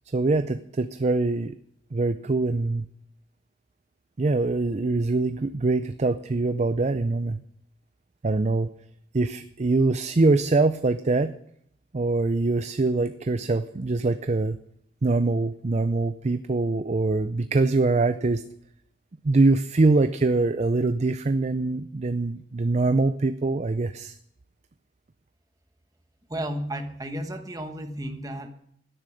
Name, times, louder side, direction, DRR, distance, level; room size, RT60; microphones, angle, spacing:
voice 1, 0.1-1.6 1.9-2.8 4.2-7.4 8.2-8.7 9.1-11.3 11.9-14.6 15.0-18.4 19.2-24.2, right 3 dB, 40° right, 11 dB, 0.5 m, -23 dB
voice 2, 26.3-28.5, right 1 dB, 20° right, 6 dB, 1.2 m, -33 dB
12.0 x 9.8 x 6.4 m, 0.68 s
head